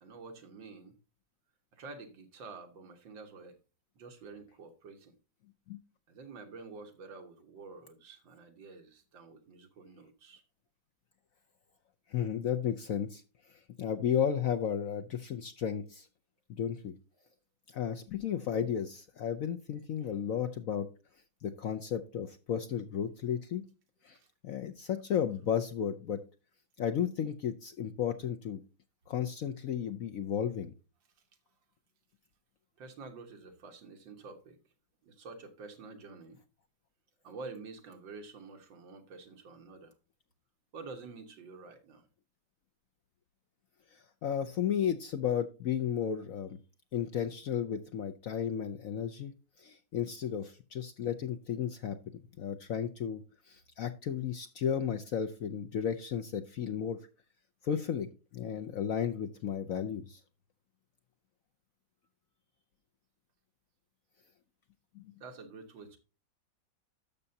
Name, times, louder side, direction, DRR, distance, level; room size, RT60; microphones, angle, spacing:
voice 1, 0.0-1.0 1.7-3.6 4.0-5.2 6.1-10.4 17.2-17.3 20.0-20.1 24.1-24.3 32.8-34.6 35.0-36.4 37.2-39.9 40.7-42.1 65.2-66.0, right 4 dB, 75° right, 2.1 m, -48 dB
voice 2, 12.1-13.2 13.5-16.1 16.5-16.9 17.7-20.9 21.4-23.6 24.0-24.2 24.4-26.2 26.8-28.6 29.1-30.7 43.9-46.6 46.9-49.3 49.6-57.0 57.6-60.2 64.9-65.1, left 8 dB, 70° left, 0.8 m, -34 dB
12.0 x 6.8 x 2.7 m
omnidirectional pair, 2.1 m